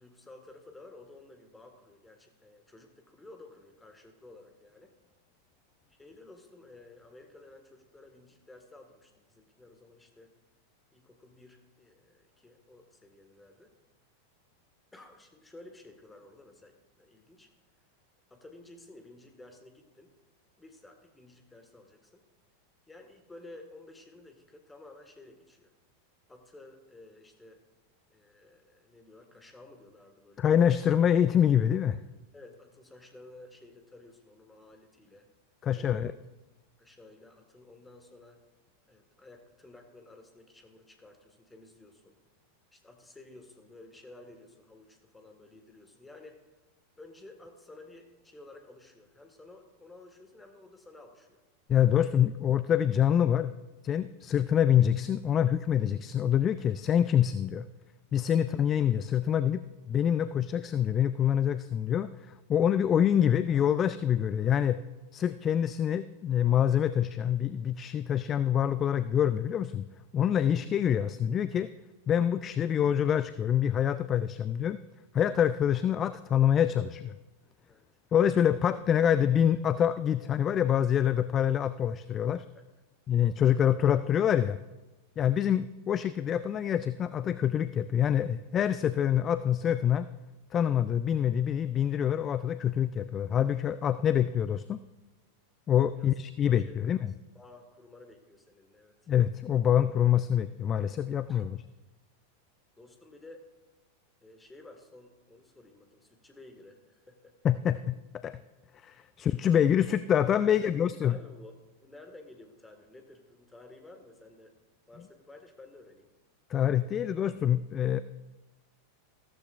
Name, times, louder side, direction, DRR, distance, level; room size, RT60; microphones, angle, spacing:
voice 1, 0.0-4.9 6.0-10.3 10.9-13.7 14.9-17.5 18.3-20.1 20.6-22.2 22.9-25.7 26.3-27.6 28.1-30.5 32.3-35.3 35.7-36.1 36.8-38.4 38.9-42.2 42.7-46.4 47.0-51.4 58.4-58.6 72.4-72.6 77.6-77.8 82.5-82.6 84.0-84.5 85.2-85.4 95.9-96.1 96.6-97.0 97.3-99.1 101.3-101.5 102.8-103.5 104.2-107.4 110.4-114.6 114.9-116.1, left 2 dB, 10° left, 5 dB, 1.7 m, -53 dB
voice 2, 30.4-32.0 35.6-36.1 51.7-53.5 53.8-57.7 58.1-59.6 59.9-64.8 65.1-69.8 70.1-71.7 72.1-74.8 75.1-77.2 78.1-82.5 83.1-84.5 85.2-90.1 90.5-94.8 95.7-97.1 99.1-101.6 107.4-108.4 108.8-111.1 116.5-118.0, left 9 dB, 25° left, 15 dB, 0.3 m, -26 dB
14.5 x 13.5 x 2.5 m, 1.1 s
figure-of-eight pair, 90°, 0 cm